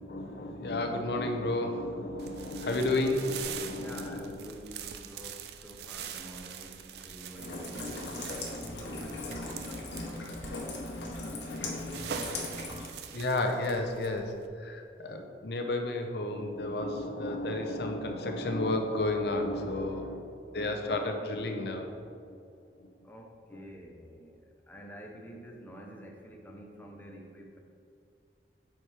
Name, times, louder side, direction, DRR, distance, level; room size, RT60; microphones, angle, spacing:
voice 1, 0.0-4.5 13.1-14.2 14.6-20.2 20.5-22.4 22.8-22.9 23.5-23.6, left 2 dB, 65° left, 4 dB, 0.6 m, -32 dB
sound 1, 2.2-14.5, right 7 dB, 65° right, 0.4 m, -44 dB
voice 2, 3.7-8.2 8.7-10.3 11.1-12.5 23.0-27.6, equal, 10° left, 0 dB, 0.6 m, -48 dB
Rain, 7.4-12.9, left 2 dB, 85° left, 1.0 m, -38 dB
7.6 x 4.5 x 3.3 m, 2.4 s
head